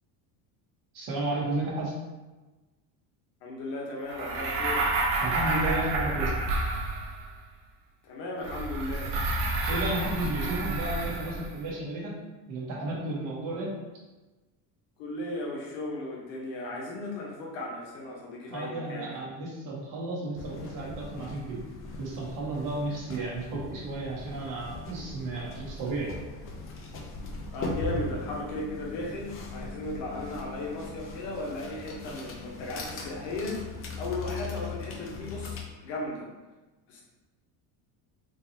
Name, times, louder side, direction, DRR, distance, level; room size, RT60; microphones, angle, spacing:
voice 1, 0.9-1.9 5.2-6.3 9.7-12.2 12.5-13.7 18.5-21.6 22.0-26.2, right 2 dB, 45° right, -3 dB, 1.1 m, -33 dB
voice 2, 3.4-4.9 8.0-9.1 15.0-19.2 27.5-36.3 36.9-37.0, left 1 dB, 80° left, -2 dB, 1.2 m, -36 dB
sound 1, 4.1-7.3 8.4-11.6, right 2 dB, 70° right, 0.9 m, -29 dB
sound 2, 20.3-35.6, left 3 dB, 30° left, 0.5 m, -39 dB
3.9 x 2.8 x 2.7 m, 1.2 s
cardioid pair, 140°, 44 cm